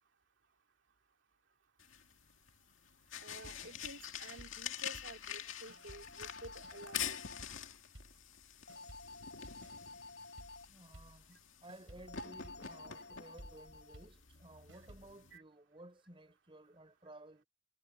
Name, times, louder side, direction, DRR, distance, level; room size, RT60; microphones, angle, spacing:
sound 1, 1.8-15.4, left 9 dB, 80° left, 2.3 m, -47 dB
voice 1, 3.2-7.2 15.3-15.4, right 2 dB, 65° right, 2.4 m, -52 dB
sound 2, 3.4-5.4 5.7-11.4 11.7-15.1, right 1 dB, 90° right, 4.1 m, -58 dB
sound 3, 5.4-7.4 8.7-10.7 12.1-14.1, left 3 dB, 60° left, 5.4 m, -53 dB
voice 2, 10.7-17.5, right 1 dB, 25° right, 5.2 m, -56 dB
head